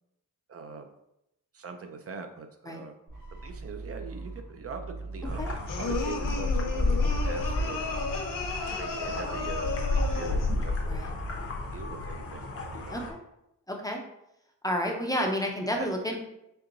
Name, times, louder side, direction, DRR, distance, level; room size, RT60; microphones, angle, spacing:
voice 1, 0.5-0.9 1.5-2.9 3.3-7.9 8.7-11.0 11.7-12.5 12.8-13.1 15.8-15.9, right 5 dB, 50° right, 5 dB, 0.4 m, -42 dB
sound 1, 3.1-9.0, right 3 dB, 65° right, 1.2 m, -42 dB
sound 2, 5.2-13.1, left 2 dB, 45° left, 0.7 m, -31 dB
sound 3, 5.7-10.6, left 4 dB, 85° left, 0.7 m, -34 dB
voice 2, 13.7-14.0 14.6-16.2, equal, 10° left, 1 dB, 0.5 m, -30 dB
4.4 x 3.6 x 2.6 m, 0.83 s
wide cardioid pair, 150°, 32 cm